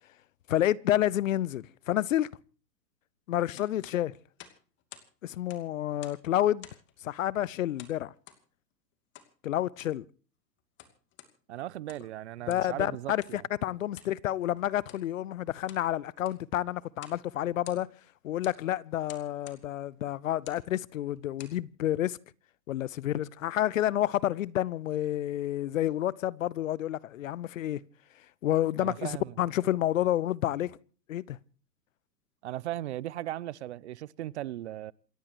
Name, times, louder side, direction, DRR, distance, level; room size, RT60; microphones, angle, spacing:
voice 1, 0.5-2.3 3.3-4.1 5.2-6.7 7.0-8.1 9.4-10.0 12.5-17.9 18.2-22.2 22.7-27.8 28.4-30.8 31.1-31.4, left 12 dB, 50° left, 0.8 m, -29 dB
sound 1, 3.6-5.1 5.4-6.3 6.6-7.0 7.8-8.4 9.1-9.3 9.7-10.0 10.6-11.3 11.8-12.1 12.5-12.7 13.2-13.4 13.9-14.2 14.8-15.1 15.5-15.9 16.2-16.5 17.0-17.2 17.5-18.1 18.4-18.6 19.1-19.6 20.3-20.7 21.2-21.6, left 10 dB, 20° left, 2.6 m, -51 dB
voice 2, 11.5-13.5 28.8-29.4 32.4-34.9, right 13 dB, 45° right, 0.7 m, -37 dB
28.0 x 14.5 x 3.0 m
hypercardioid pair, 130°, 50 cm